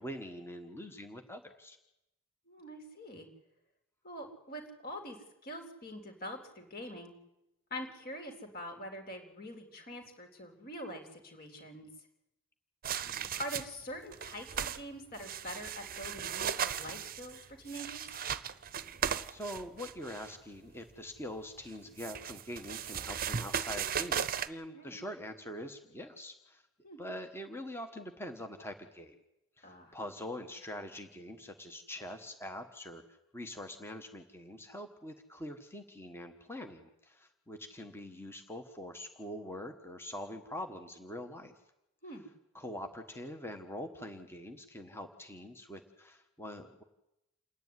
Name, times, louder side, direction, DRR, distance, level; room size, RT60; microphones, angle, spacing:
voice 1, 0.0-1.8 13.1-13.3 19.3-26.6 27.0-29.2 29.6-33.0 33.3-41.5 42.5-46.8, left 1 dB, 10° left, 6 dB, 1.3 m, -44 dB
voice 2, 2.5-3.3 4.0-5.2 5.4-7.1 7.7-11.9 13.4-18.2 24.7-25.0 26.8-27.0 29.6-30.0 42.0-42.2, equal, 45° left, 4 dB, 3.7 m, -44 dB
sound 1, 12.8-13.8 14.1-14.8 15.1-20.3 21.6-24.5, right 8 dB, 40° right, 0.7 m, -37 dB
28.0 x 10.0 x 9.6 m, 0.89 s
head